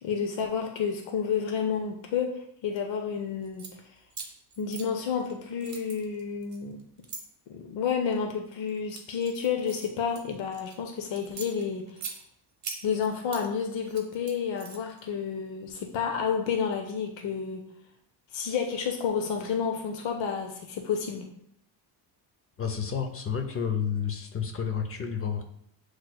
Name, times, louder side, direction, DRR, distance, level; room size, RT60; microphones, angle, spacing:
voice 1, 0.0-3.8 4.6-6.8 7.5-12.0 12.8-17.7 18.3-21.3, left 6 dB, 80° left, 3 dB, 0.7 m, -30 dB
sound 1, 3.4-3.7 4.1-5.3 5.6-7.2 7.9-8.2 8.7-10.8 11.2-12.2 12.6-13.5 13.8-15.0, right 5 dB, 40° right, 0.9 m, -41 dB
voice 2, 22.6-25.4, left 7 dB, 30° left, 5 dB, 0.5 m, -30 dB
7.6 x 3.1 x 2.2 m, 0.74 s
cardioid pair, 160°, 44 cm